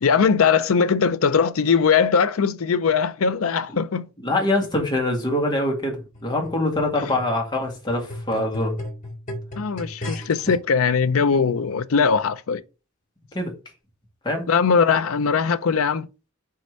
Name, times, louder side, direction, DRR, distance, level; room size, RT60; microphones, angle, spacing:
voice 1, 0.0-4.1 7.0-7.1 9.6-12.6 14.5-16.1, left 6 dB, 80° left, 0.5 m, -20 dB
voice 2, 4.2-8.8 13.3-13.5 14.2-14.5, left 1 dB, 20° left, 1.9 m, -24 dB
sound 1, 6.1-10.6 11.3-11.4, left 1 dB, 40° left, 2.0 m, -36 dB
4.7 x 4.2 x 5.2 m
head